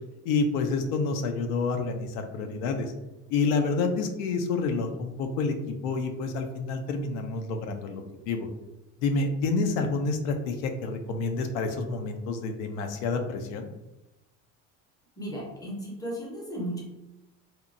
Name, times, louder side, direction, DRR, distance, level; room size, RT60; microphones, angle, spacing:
voice 1, 0.2-2.9 3.3-8.5 9.0-13.7, left 4 dB, 90° left, 5 dB, 0.5 m, -28 dB
voice 2, 15.2-16.8, equal, 10° left, -2 dB, 0.7 m, -35 dB
2.7 x 2.1 x 2.5 m, 0.95 s
cardioid pair, 140°, 33 cm